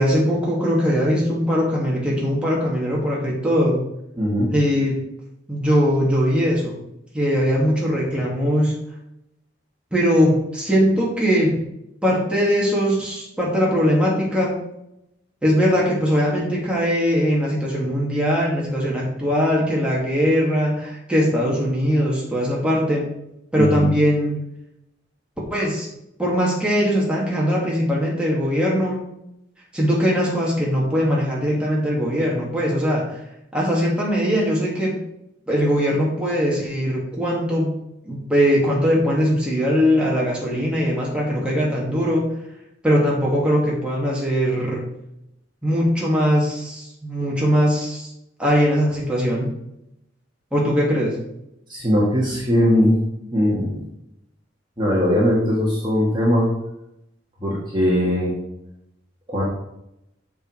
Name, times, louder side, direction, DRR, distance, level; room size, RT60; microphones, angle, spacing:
voice 1, 0.0-3.8 4.5-5.0 5.5-6.8 7.1-8.8 9.9-11.6 12.0-14.6 15.4-23.1 23.5-24.4 25.5-25.9 26.2-29.1 29.7-33.2 33.5-35.0 35.5-37.8 38.0-42.3 42.8-44.8 45.6-48.1 48.4-49.5 50.5-51.2, equal, 5° right, -5 dB, 2.4 m, -20 dB
voice 2, 4.2-4.5 23.6-23.9 51.7-53.0 53.3-53.8 54.8-56.5 57.4-58.3 59.3-59.4, equal, 25° right, -5 dB, 1.9 m, -19 dB
7.1 x 6.8 x 4.7 m, 0.83 s
head